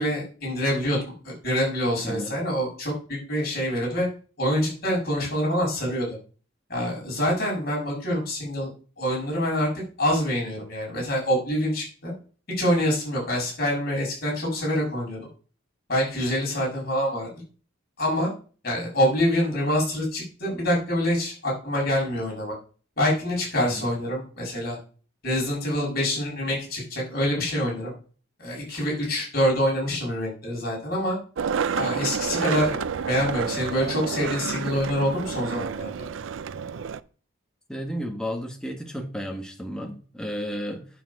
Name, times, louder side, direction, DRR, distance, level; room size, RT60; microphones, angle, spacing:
voice 1, 0.0-4.1 4.4-6.1 6.7-8.7 9.0-9.7 10.0-12.1 12.6-15.3 15.9-17.3 18.0-18.3 18.6-22.5 23.0-24.8 25.2-27.9 28.4-31.2 31.7-35.9, equal, 50° left, 6.3 m, -26 dB
Skateboard, 31.4-37.0, right 6 dB, 70° right, 0.5 m, -29 dB
voice 2, 37.7-40.9, equal, 5° left, 1.5 m, -33 dB
9.1 x 7.1 x 5.3 m
head